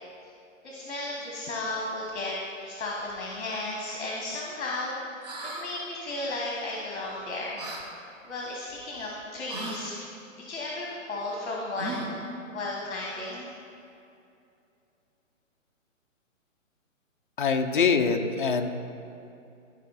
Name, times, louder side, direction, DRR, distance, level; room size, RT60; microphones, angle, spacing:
voice 1, 0.6-2.4 2.6-5.0 5.4-7.6 8.3-10.0 10.4-12.1 12.5-13.5, left 2 dB, 60° left, -2 dB, 1.4 m, -34 dB
sound 1, 5.2-5.7 7.6-7.8 9.5-9.8 11.7-12.3, right 2 dB, 30° right, 0.8 m, -36 dB
voice 2, 17.4-18.7, left 5 dB, 40° left, 5 dB, 0.4 m, -24 dB
12.5 x 4.8 x 4.1 m, 2.7 s
hypercardioid pair, 165°, 40 cm